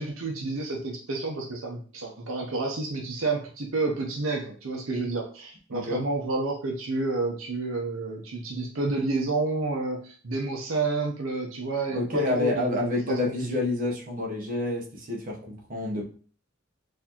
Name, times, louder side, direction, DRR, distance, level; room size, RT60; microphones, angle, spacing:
voice 1, 0.0-13.6, right 3 dB, 75° right, 1 dB, 0.7 m, -30 dB
voice 2, 5.7-6.0 11.9-16.0, left 2 dB, 40° right, -1 dB, 0.9 m, -28 dB
4.2 x 2.7 x 2.8 m, 0.41 s
head